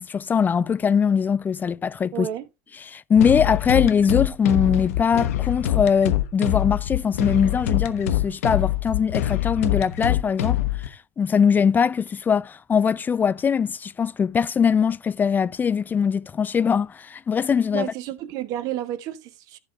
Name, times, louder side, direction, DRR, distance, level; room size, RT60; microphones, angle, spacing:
voice 1, 0.0-2.3 2.8-17.9, left 6 dB, 25° left, 0.4 m, -22 dB
voice 2, 2.1-2.5 17.7-19.6, right 12 dB, 50° right, 1.2 m, -31 dB
sound 1, 3.2-10.9, left 13 dB, 70° left, 1.1 m, -24 dB
15.0 x 5.1 x 3.5 m
hypercardioid pair, 80°, 8 cm